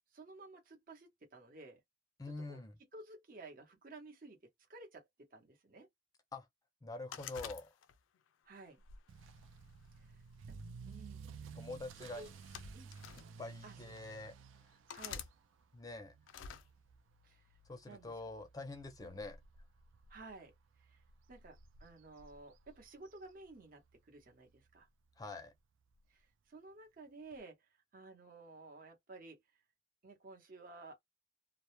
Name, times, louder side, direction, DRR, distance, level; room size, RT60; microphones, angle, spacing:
voice 1, 0.1-1.8 2.5-2.6 2.9-4.4 4.7-5.9 8.4-8.8 10.0-10.6 10.9-11.6 12.2-12.3 12.7-12.9 13.6-13.9 14.9-15.3 17.2-17.5 17.8-18.1 19.0-19.2 20.1-21.0 21.3-24.9 26.1-27.6 27.9-29.4 30.0-31.0, right 3 dB, 50° right, 0.8 m, -54 dB
voice 2, 2.2-2.8 6.3-6.5 6.8-7.7 11.5-12.3 13.2-14.3 14.6-14.8 15.7-16.2 17.7-19.4 25.2-25.5, left 2 dB, 20° left, 0.5 m, -46 dB
sound 1, 7.1-8.2 8.8-10.0 10.9-11.2 12.2-13.3 14.0-14.1 14.9-15.3 16.3-16.6, left 8 dB, 85° left, 0.4 m, -48 dB
Motor vehicle (road) / Accelerating revving vroom, 9.1-23.9 24.2-24.6 25.1-25.2 25.5-25.6 25.9-26.0 27.3-27.4, right 5 dB, 80° right, 0.4 m, -55 dB
2.1 x 2.0 x 2.9 m
head